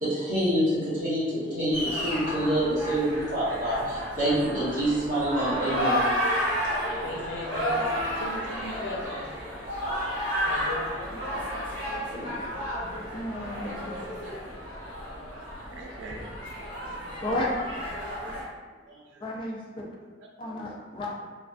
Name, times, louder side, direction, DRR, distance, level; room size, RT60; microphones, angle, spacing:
voice 1, 0.0-6.0 12.1-12.3, right 1 dB, 45° right, -10 dB, 1.1 m, -27 dB
sound 1, 1.7-18.4, equal, 25° right, 1.2 m, -32 dB
voice 2, 3.7-4.1 7.0-9.7 10.4-11.0, left 1 dB, 90° left, -2 dB, 0.6 m, -37 dB
voice 3, 13.1-14.0 17.2-17.6 19.2-19.9 20.4-21.1, left 1 dB, 25° left, -3 dB, 0.3 m, -32 dB
voice 4, 15.3-17.1 18.9-19.2 20.2-20.7, right 2 dB, 75° right, 0 dB, 0.4 m, -47 dB
2.5 x 2.3 x 2.2 m, 1.4 s
head